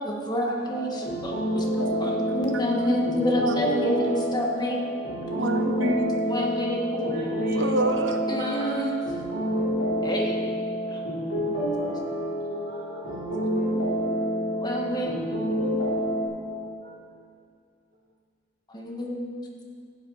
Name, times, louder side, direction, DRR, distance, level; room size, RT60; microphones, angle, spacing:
voice 1, 0.0-1.7 2.0-4.8 6.3-6.8 8.3-8.9 10.0-10.4 10.9-11.0 14.6-15.2 18.7-19.2, left 1 dB, 20° left, -1 dB, 1.7 m, -28 dB
sound 1, 0.7-16.3, equal, 85° left, 3.2 m, -28 dB
voice 2, 1.5-4.0 5.3-6.1 7.6-8.2, right 2 dB, 85° right, 5 dB, 1.1 m, -30 dB
voice 3, 6.9-7.6 8.4-8.8 12.5-13.6 16.3-16.9, equal, 50° right, -5 dB, 2.1 m, -36 dB
14.5 x 8.1 x 5.6 m, 2.2 s
head